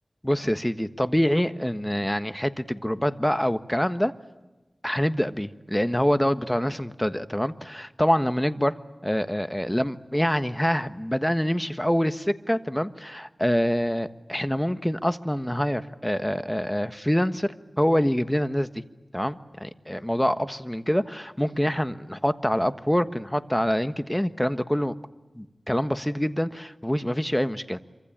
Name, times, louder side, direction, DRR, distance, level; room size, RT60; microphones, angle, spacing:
voice 1, 0.2-4.1 4.8-8.8 9.0-17.5 17.8-18.8 19.1-24.9 25.4-27.8, equal, 10° left, 11 dB, 1.4 m, -25 dB
27.0 x 25.0 x 8.8 m, 1.1 s
wide cardioid pair, 50°, 0 cm